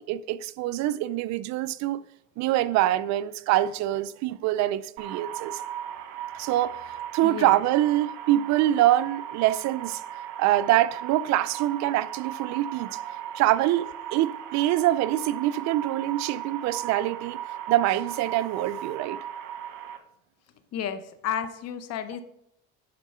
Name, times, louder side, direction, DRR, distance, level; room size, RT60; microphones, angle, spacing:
voice 1, 0.0-2.0 2.4-5.6 6.3-6.8 7.1-10.0 10.4-13.8 14.1-17.4 17.7-19.2, right 14 dB, 55° right, 0.5 m, -25 dB
sound 1, 5.0-20.0, right 10 dB, 85° right, 1.3 m, -37 dB
voice 2, 7.2-7.6 20.7-22.2, left 9 dB, 50° left, 1.0 m, -32 dB
11.0 x 4.5 x 5.6 m
cardioid pair, 130°, 33 cm